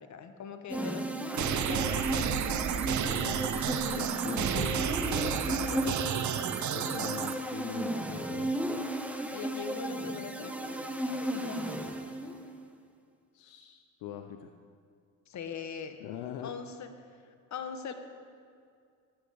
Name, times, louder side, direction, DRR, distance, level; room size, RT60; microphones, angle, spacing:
voice 1, 0.0-1.4 1.7-3.4 9.3-12.2 15.3-16.0 16.4-16.9 17.2-17.9, left 6 dB, 50° left, 8 dB, 1.1 m, -42 dB
sound 1, 0.7-12.5, right 1 dB, 5° right, 0.9 m, -34 dB
sound 2, 1.3-7.3, right 9 dB, 55° right, 0.8 m, -31 dB
voice 2, 3.9-6.0 6.7-8.6 13.3-14.5 16.0-16.6, left 10 dB, 80° left, 7 dB, 0.6 m, -42 dB
15.5 x 8.7 x 3.5 m, 2.3 s
supercardioid pair, 65°, 36 cm